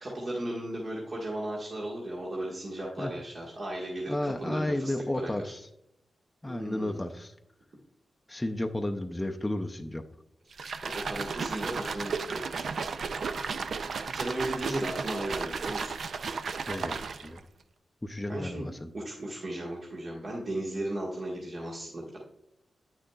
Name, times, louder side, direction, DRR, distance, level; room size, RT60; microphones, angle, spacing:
voice 1, 0.0-5.5 6.5-7.0 10.8-12.5 14.0-15.9 18.3-18.7 18.9-22.2, right 1 dB, 50° right, -4 dB, 1.5 m, -36 dB
voice 2, 4.1-5.6 6.4-7.3 8.3-10.0 14.7-14.8 16.7-17.4 18.0-18.9, left 1 dB, 15° left, 3 dB, 0.5 m, -32 dB
sound 1, 10.5-17.4, right 5 dB, 70° right, 0.4 m, -34 dB
9.0 x 6.4 x 2.3 m, 0.80 s
cardioid pair, 70°, 0 cm